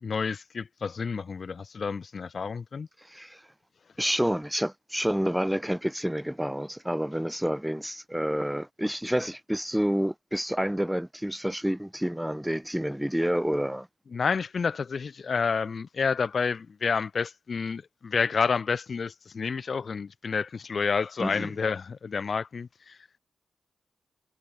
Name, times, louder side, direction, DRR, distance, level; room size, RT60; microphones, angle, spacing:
voice 1, 0.0-2.9 14.1-23.0, left 5 dB, 55° left, 1.6 m, -29 dB
voice 2, 3.0-3.5 4.0-13.9 21.2-21.5, equal, 5° right, 0.7 m, -29 dB
cardioid pair, 70°, 0 cm